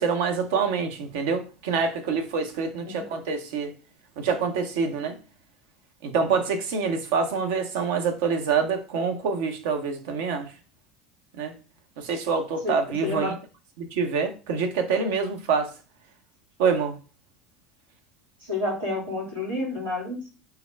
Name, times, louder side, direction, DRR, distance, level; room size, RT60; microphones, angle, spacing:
voice 1, 0.0-3.7 4.2-5.2 6.0-10.5 11.4-11.6 12.0-13.3 13.8-15.7 16.6-16.9, right 5 dB, 65° right, 0.6 m, -26 dB
voice 2, 13.0-13.4 18.4-20.3, left 2 dB, 85° right, 1.6 m, -29 dB
3.4 x 2.3 x 3.3 m
figure-of-eight pair, 70°, 0 cm